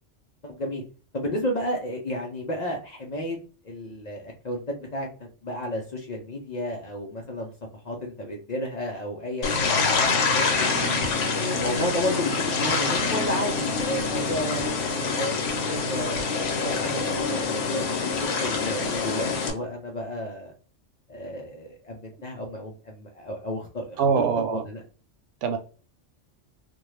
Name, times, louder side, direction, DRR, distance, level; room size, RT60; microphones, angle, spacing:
voice 1, 0.4-0.8 1.1-3.4 3.6-7.5 7.8-10.8 11.3-16.2 16.6-20.5 21.1-24.8, equal, 45° left, 0.6 m, -32 dB
sound 1, 9.4-19.5, left 4 dB, 85° left, 1.0 m, -26 dB
voice 2, 24.0-24.6 25.4-25.6, right 6 dB, 80° right, 0.9 m, -24 dB
2.5 x 2.2 x 3.1 m
omnidirectional pair, 1.2 m